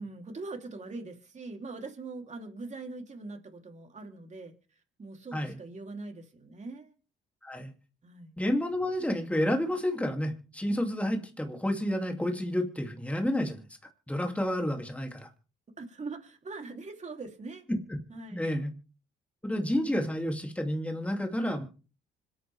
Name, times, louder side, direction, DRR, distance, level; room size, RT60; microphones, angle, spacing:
voice 1, 0.0-6.9 8.0-8.4 15.8-17.7 18.1-18.5, right 3 dB, 35° right, 3.3 m, -42 dB
voice 2, 8.4-13.6 14.1-15.3 18.3-18.7 19.4-21.6, left 1 dB, 5° left, 2.7 m, -30 dB
25.5 x 9.1 x 3.5 m
cardioid pair, 90°, 20 cm